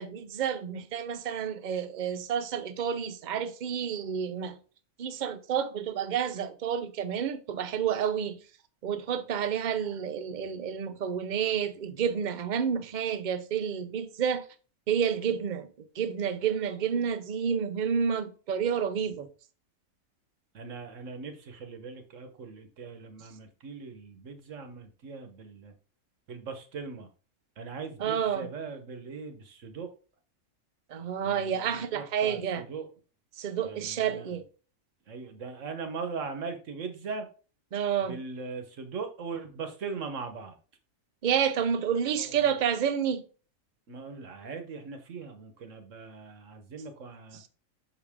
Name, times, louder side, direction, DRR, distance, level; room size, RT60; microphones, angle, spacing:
voice 1, 0.0-4.6 5.0-8.4 8.8-14.5 14.9-19.3 28.0-28.5 30.9-32.7 33.4-34.4 37.7-38.2 41.2-43.3 47.3-47.5, right 8 dB, 50° right, 0.6 m, -30 dB
voice 2, 20.5-25.7 26.3-27.1 27.6-29.9 31.2-32.9 33.6-34.3 35.1-37.3 38.0-40.6 42.1-42.5 43.9-47.4, right 4 dB, 65° right, 1.4 m, -40 dB
6.3 x 5.0 x 3.5 m
omnidirectional pair, 1.4 m